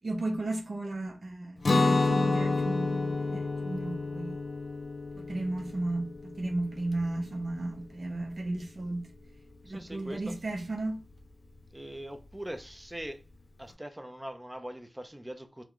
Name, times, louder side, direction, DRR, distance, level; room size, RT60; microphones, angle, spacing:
voice 1, 0.0-4.4 5.1-9.1 9.7-11.0, right 2 dB, 60° right, 0.6 m, -34 dB
Guitar, 1.6-7.5, left 3 dB, 65° left, 0.5 m, -30 dB
voice 2, 9.6-10.4 11.7-13.2 13.6-15.6, right 1 dB, 15° right, 0.5 m, -42 dB
2.9 x 2.2 x 3.7 m
wide cardioid pair, 60°, 0 cm